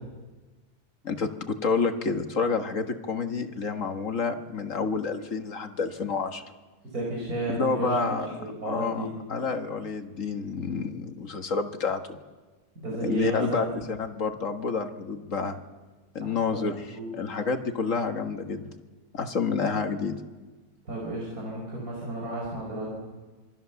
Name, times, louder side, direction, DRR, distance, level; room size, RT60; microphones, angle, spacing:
voice 1, 1.0-6.4 7.5-12.2 13.0-15.6 16.2-16.9 17.1-18.7 19.1-20.2, left 4 dB, 55° left, 7 dB, 1.9 m, -29 dB
voice 2, 6.9-9.1 12.8-13.6 16.5-16.7 16.9-17.1 20.9-22.9, right 2 dB, 65° right, -3 dB, 5.6 m, -32 dB
26.5 x 23.5 x 7.0 m, 1.3 s
omnidirectional pair, 1.6 m